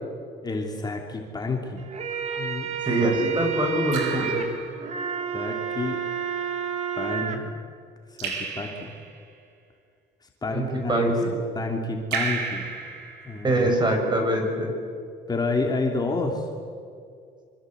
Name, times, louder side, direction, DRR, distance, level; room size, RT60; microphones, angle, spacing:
voice 1, 0.4-1.9 2.3-2.7 3.0-3.2 5.3-6.0 6.9-7.5 8.1-8.9 10.4-11.1 11.5-12.7 13.2-13.7 15.3-16.5, left 3 dB, 25° left, 1 dB, 3.0 m, -29 dB
sound 1, 1.8-7.4, right 8 dB, 40° right, 3.2 m, -30 dB
Raindrop / Drip, 2.1-2.6 3.9-5.3 8.2-9.3 12.1-13.8, right 5 dB, 90° right, 5.0 m, -34 dB
voice 2, 2.8-4.4 10.5-11.3 13.4-14.7, right 1 dB, 25° right, 3 dB, 7.1 m, -23 dB
26.0 x 25.0 x 8.1 m, 2.4 s
cardioid pair, 110°, 17 cm